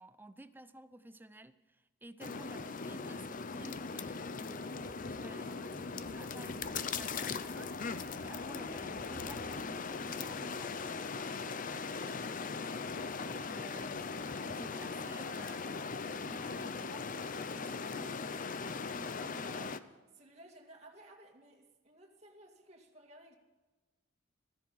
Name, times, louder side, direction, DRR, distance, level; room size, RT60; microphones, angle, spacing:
voice 1, 0.0-11.2 11.9-12.4 13.3-15.8 16.1-18.4, right 1 dB, 10° right, 12 dB, 0.5 m, -53 dB
sound 1, 2.2-19.8, left 4 dB, 40° left, 0.6 m, -39 dB
Thunder / Rain, 5.7-12.4, right 2 dB, 50° right, 0.7 m, -57 dB
voice 2, 19.0-19.9 20.1-23.4, right 1 dB, 30° right, -1 dB, 2.3 m, -56 dB
15.0 x 13.5 x 5.8 m, 1.2 s
head